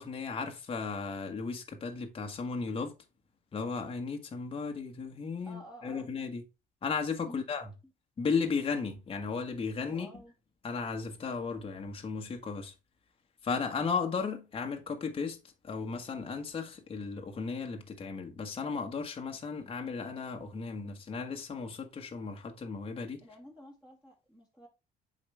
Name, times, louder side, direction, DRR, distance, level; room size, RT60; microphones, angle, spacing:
voice 1, 0.0-2.9 3.5-6.4 6.8-7.7 8.2-10.2 10.6-12.7 13.4-15.4 15.6-23.2, left 5 dB, 35° left, 1.5 m, -35 dB
voice 2, 5.4-6.1 7.2-7.5 9.9-10.3 23.2-24.7, equal, 5° right, 2.5 m, -50 dB
8.0 x 4.9 x 3.3 m
cardioid pair, 110°, 17 cm